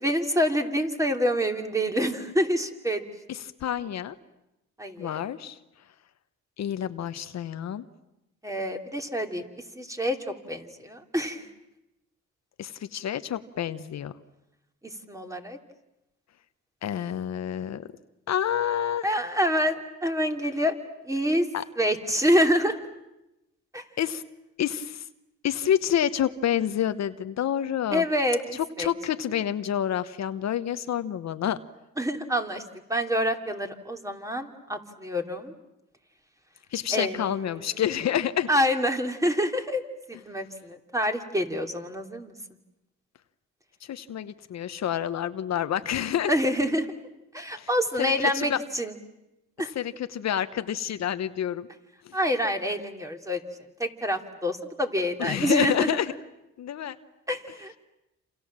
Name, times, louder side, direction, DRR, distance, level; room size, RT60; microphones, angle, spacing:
voice 1, 0.0-3.0 4.8-5.2 8.4-9.4 9.8-11.5 14.8-15.6 19.0-20.7 21.0-21.5 21.8-22.8 23.7-23.8 27.9-28.9 32.0-32.6 32.9-35.5 36.9-37.6 38.5-39.8 40.1-42.3 46.3-46.9 47.3-48.9 49.6-49.7 52.1-53.4 53.8-56.0 57.3-57.8, equal, 10° right, 4 dB, 3.0 m, -27 dB
voice 2, 3.3-4.2 5.0-5.6 6.6-7.8 12.6-14.1 16.8-17.9 18.3-19.1 21.5-21.6 24.0-24.2 24.6-25.0 25.4-28.0 28.5-31.6 36.7-38.5 43.9-46.3 47.5-47.7 48.0-48.6 49.7-51.7 52.0-52.1 55.2-56.1 56.6-57.0, left 10 dB, 60° left, 11 dB, 1.1 m, -28 dB
28.0 x 28.0 x 7.5 m, 0.91 s
cardioid pair, 90°, 30 cm